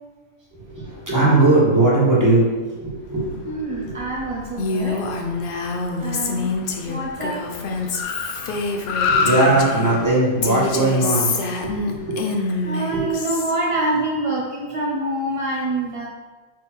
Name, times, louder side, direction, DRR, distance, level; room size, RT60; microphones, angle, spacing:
voice 1, 0.5-3.9 8.8-13.3, right 2 dB, 15° right, -7 dB, 1.6 m, -20 dB
Car, 3.1-12.6, left 5 dB, 80° left, 1.1 m, -30 dB
voice 2, 3.5-5.0 6.0-6.5 6.9-7.4 12.6-16.1, right 2 dB, 40° right, -3 dB, 0.4 m, -25 dB
Female speech woman speaking, 4.6-10.0 10.4-13.5, left 3 dB, 55° left, 0.6 m, -26 dB
6.3 x 3.5 x 4.5 m, 1.3 s
omnidirectional pair, 1.5 m